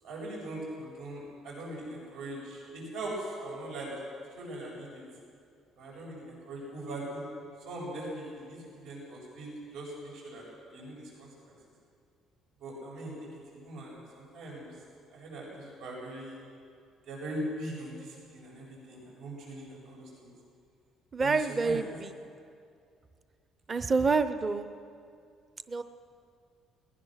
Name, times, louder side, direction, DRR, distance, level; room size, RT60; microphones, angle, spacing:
voice 1, 0.0-4.1 4.3-5.0 5.8-7.3 7.6-10.4 10.7-11.6 12.6-13.3 13.5-14.7 15.1-16.4 17.1-20.3 21.2-21.8, right 1 dB, 85° right, -4 dB, 7.7 m, -41 dB
voice 2, 21.1-22.1 23.7-24.7 25.7-25.8, right 4 dB, 25° right, 11 dB, 0.7 m, -27 dB
21.5 x 20.0 x 6.5 m, 2.3 s
cardioid pair, 155°, 0 cm